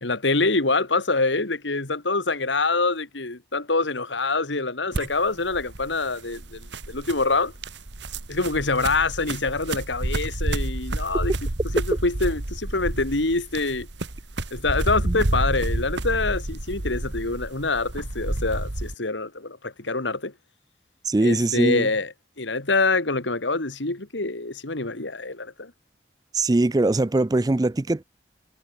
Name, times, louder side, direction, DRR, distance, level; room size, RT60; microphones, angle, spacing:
voice 1, 0.0-7.5 8.3-11.3 11.7-13.9 14.5-20.3 21.2-25.7, left 3 dB, 85° left, 2.3 m, -25 dB
sound 1, 4.9-18.9, right 1 dB, 75° right, 1.9 m, -30 dB
voice 2, 21.1-21.9 26.3-28.0, right 2 dB, 20° right, 0.4 m, -21 dB
head